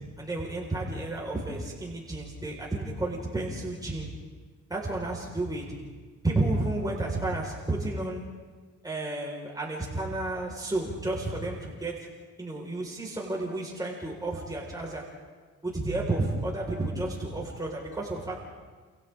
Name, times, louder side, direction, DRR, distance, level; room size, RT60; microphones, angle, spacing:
voice 1, 0.2-4.1 4.7-5.8 6.2-8.2 8.8-12.0 12.4-15.0 15.6-18.3, right 2 dB, 10° right, -3 dB, 5.2 m, -31 dB
29.0 x 28.0 x 3.8 m, 1.4 s
cardioid pair, 90°, 30 cm